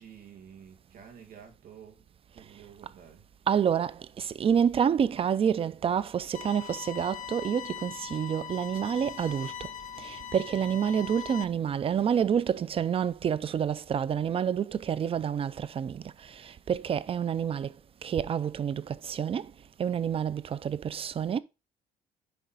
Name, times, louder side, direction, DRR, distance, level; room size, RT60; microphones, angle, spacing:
voice 1, 0.0-2.0 2.3-3.3, right 8 dB, 60° right, 2.2 m, -50 dB
voice 2, 3.5-9.5 10.0-16.1 16.4-17.7 18.0-19.5 19.8-21.4, right 8 dB, 35° right, 0.4 m, -28 dB
sound 1, 6.3-11.4, left 9 dB, 50° left, 0.8 m, -41 dB
10.5 x 3.6 x 3.8 m
cardioid pair, 110°, 17 cm